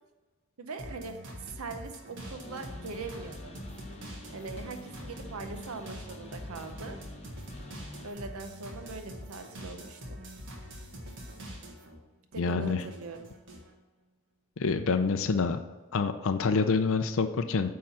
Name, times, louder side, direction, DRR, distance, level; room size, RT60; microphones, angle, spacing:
voice 1, 0.6-1.2 1.4-3.6 4.3-7.0 8.0-10.2 12.3-13.3, right 3 dB, 75° right, 7 dB, 0.7 m, -41 dB
sound 1, 0.8-12.0 12.3-13.7, equal, 60° right, 1.4 m, -44 dB
sound 2, 2.2-8.1, left 1 dB, 30° left, 0.9 m, -47 dB
voice 2, 12.4-12.8 14.6-15.6 15.9-17.8, left 4 dB, 65° left, 7 dB, 0.5 m, -27 dB
8.8 x 3.8 x 5.6 m, 1.2 s
head